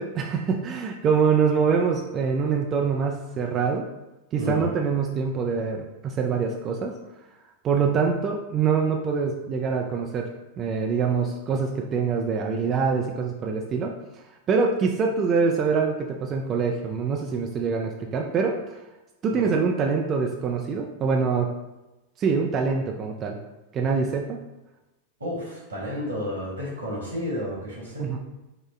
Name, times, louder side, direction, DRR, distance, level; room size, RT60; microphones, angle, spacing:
voice 1, 0.0-3.8 4.3-6.9 7.6-10.3 10.6-13.9 14.5-18.8 19.2-21.5 22.2-23.4 23.7-24.4 28.0-28.2, right 5 dB, 30° right, 1 dB, 0.3 m, -24 dB
voice 2, 4.4-4.7 19.3-19.6 25.2-28.2, left 1 dB, 75° right, -4 dB, 1.3 m, -31 dB
4.8 x 2.1 x 3.2 m, 1.0 s
figure-of-eight pair, 90°, 0 cm